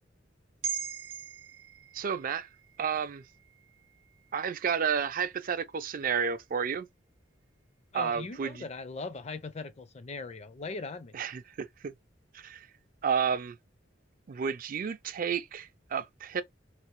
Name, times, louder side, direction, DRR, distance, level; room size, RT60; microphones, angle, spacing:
sound 1, 0.6-5.1 5.5-5.7, right 7 dB, 90° right, 0.6 m, -42 dB
voice 1, 1.9-2.5 2.8-3.2 4.3-6.9 7.9-8.6 11.1-11.9 12.3-12.7 13.0-13.6 14.3-16.4, right 7 dB, 45° right, 0.4 m, -31 dB
voice 2, 7.9-11.2, left 3 dB, 35° left, 0.5 m, -39 dB
3.3 x 2.7 x 3.0 m
head